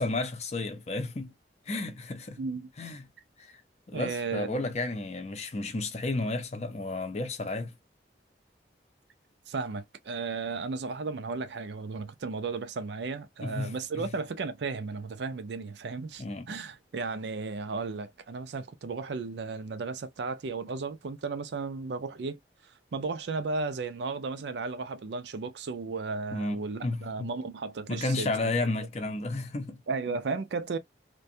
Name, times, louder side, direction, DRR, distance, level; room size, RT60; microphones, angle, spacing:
voice 1, 0.0-1.3 1.7-2.4 2.8-3.0 3.4-3.6 3.9-7.7 13.4-14.1 16.2-16.5 26.3-27.3 27.9-29.8, left 2 dB, 35° left, 0.6 m, -32 dB
voice 2, 2.4-2.7 3.9-4.6 9.5-22.4 22.9-28.5 29.9-30.8, right 4 dB, 70° right, 0.4 m, -34 dB
2.5 x 2.2 x 2.6 m
head